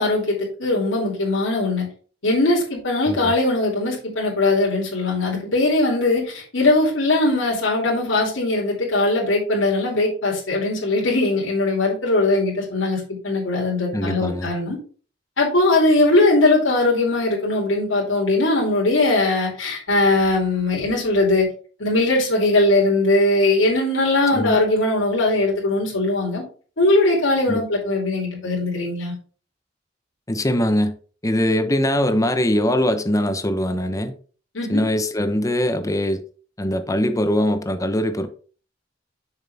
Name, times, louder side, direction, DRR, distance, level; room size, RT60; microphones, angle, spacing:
voice 1, 0.0-1.9 2.2-14.8 15.4-21.5 21.8-26.4 26.8-29.1 34.5-34.8, left 2 dB, 75° left, 3.0 m, -20 dB
voice 2, 13.9-14.5 24.3-24.6 27.5-27.6 30.3-30.9 31.2-34.1 34.7-36.2 36.6-38.3, left 1 dB, 15° left, 0.8 m, -22 dB
6.7 x 6.4 x 3.5 m
head